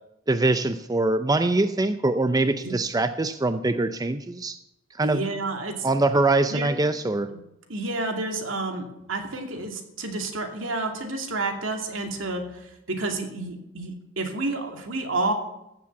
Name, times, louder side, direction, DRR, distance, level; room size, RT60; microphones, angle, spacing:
voice 1, 0.3-4.6 5.0-5.2 5.8-7.3, right 2 dB, 20° right, 10 dB, 0.5 m, -23 dB
voice 2, 5.0-5.9 6.5-6.7 7.3-7.4 7.7-15.3, right 2 dB, 75° right, 4 dB, 2.4 m, -30 dB
14.5 x 7.5 x 8.3 m, 0.87 s
head